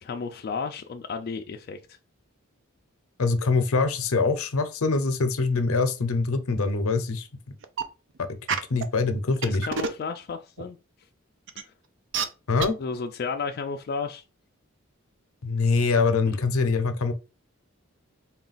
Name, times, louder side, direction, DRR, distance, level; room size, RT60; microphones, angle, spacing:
voice 1, 0.0-2.0 9.4-10.8 11.6-11.7 12.8-14.2 16.3-16.4, left 5 dB, 45° left, 0.3 m, -33 dB
voice 2, 3.2-7.3 8.7-9.7 12.5-12.8 15.4-17.1, left 4 dB, 85° left, 0.6 m, -24 dB
sound 1, 7.6-7.8 8.5-8.8 9.4-10.0 10.6-10.7 11.5-11.6 12.1-12.3 12.6-12.7, right 6 dB, 60° right, 0.4 m, -26 dB
3.9 x 2.3 x 3.9 m
head